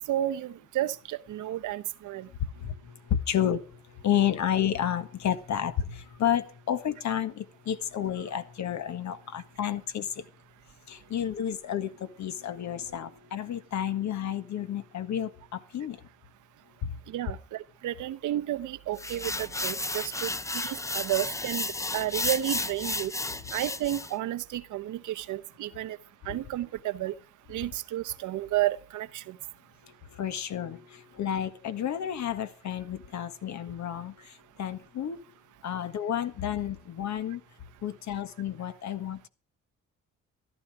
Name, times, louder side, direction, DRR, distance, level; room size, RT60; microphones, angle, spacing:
voice 1, 0.0-2.3 17.1-23.1 23.5-26.0 26.3-27.1 27.5-29.4, right 13 dB, 80° right, 1.0 m, -32 dB
voice 2, 2.5-10.2 10.9-16.0 16.8-17.0 26.3-26.4 29.8-35.2 35.6-37.4 37.8-39.3, left 10 dB, 65° left, 1.6 m, -31 dB
sound 1, 19.0-24.1, left 2 dB, 10° left, 0.7 m, -33 dB
14.0 x 12.5 x 4.9 m
cardioid pair, 90°, 30 cm